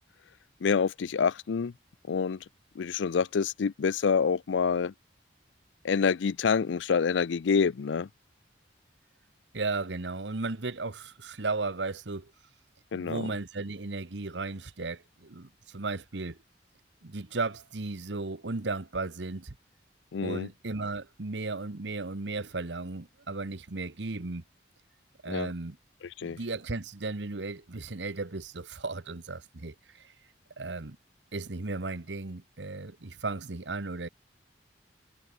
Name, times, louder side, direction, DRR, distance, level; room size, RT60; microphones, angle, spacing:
voice 1, 0.6-1.7 2.1-2.4 2.8-4.9 5.8-8.1 12.9-13.3 20.1-20.5 25.3-25.5 26.2-26.4, left 6 dB, 85° left, 0.4 m, -27 dB
voice 2, 9.5-12.3 12.9-16.4 17.0-19.5 20.2-24.4 25.2-25.8 26.2-30.1 30.6-31.0 31.3-34.1, right 3 dB, 80° right, 1.1 m, -35 dB
head